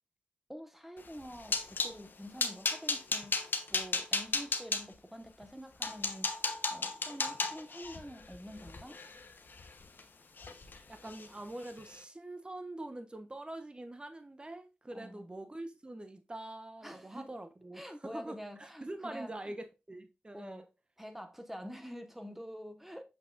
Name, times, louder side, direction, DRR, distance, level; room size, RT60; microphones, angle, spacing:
voice 1, 0.5-3.3 3.7-6.3 6.7-9.0 14.9-15.2 16.8-17.3 17.7-19.4 20.3-20.6 21.0-23.0, equal, 5° right, 1.4 m, -47 dB
sound 1, 1.1-2.0 2.4-4.8 5.4-5.5 5.8-10.0 10.4-10.8 11.0-11.3 11.7-11.8, left 4 dB, 60° left, 1.1 m, -34 dB
voice 2, 10.9-20.6, right 1 dB, 25° right, 1.1 m, -44 dB
6.8 x 5.9 x 2.5 m
cardioid pair, 50°, 4 cm